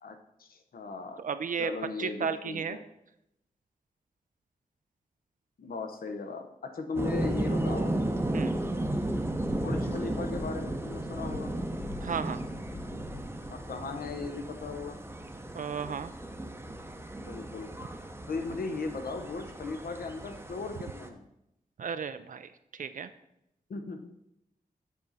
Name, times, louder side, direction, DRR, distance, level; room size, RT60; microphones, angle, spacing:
voice 1, 0.0-1.2 1.6-2.8 5.6-8.0 9.4-11.5 13.5-15.0 17.2-17.7 18.3-21.3 23.7-24.1, left 4 dB, 80° left, 6 dB, 0.9 m, -37 dB
voice 2, 1.2-1.7 2.0-2.8 8.3-8.5 12.0-12.4 15.5-16.1 21.8-23.1, right 6 dB, 60° right, 11 dB, 0.4 m, -34 dB
sound 1, 7.0-21.1, right 1 dB, 15° right, 0.7 m, -34 dB
Thunder / Rain, 8.4-17.1 17.6-19.0, left 3 dB, 35° left, 0.7 m, -47 dB
7.5 x 5.7 x 4.0 m, 0.82 s
wide cardioid pair, 110°, 15 cm